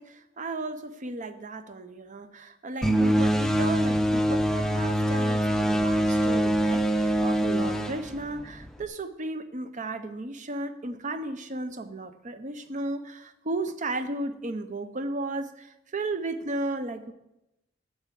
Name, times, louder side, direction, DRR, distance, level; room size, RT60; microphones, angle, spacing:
voice 1, 0.0-17.1, right 2 dB, 40° right, 10 dB, 0.7 m, -34 dB
sound 1, 2.8-8.8, right 1 dB, ahead, 0.6 m, -24 dB
8.7 x 6.9 x 7.5 m, 0.90 s
head